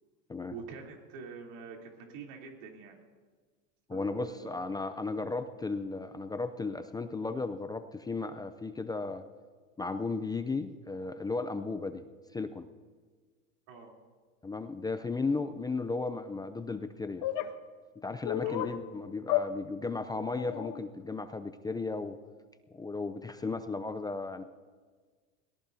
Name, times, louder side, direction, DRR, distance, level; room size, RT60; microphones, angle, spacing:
voice 1, 0.5-2.9 3.9-4.5 13.7-13.9 18.4-18.7, right 5 dB, 70° right, 0 dB, 3.4 m, -46 dB
voice 2, 3.9-9.2 9.8-12.0 12.3-12.7 14.4-17.3 18.0-22.2 22.7-24.4, left 3 dB, 10° left, 9 dB, 0.4 m, -35 dB
sound 1, 17.2-17.5 18.2-18.7 19.3-19.5 20.4-20.8, left 13 dB, 50° left, 1.2 m, -31 dB
23.5 x 18.0 x 2.7 m, 1.5 s
supercardioid pair, 120°, 40 cm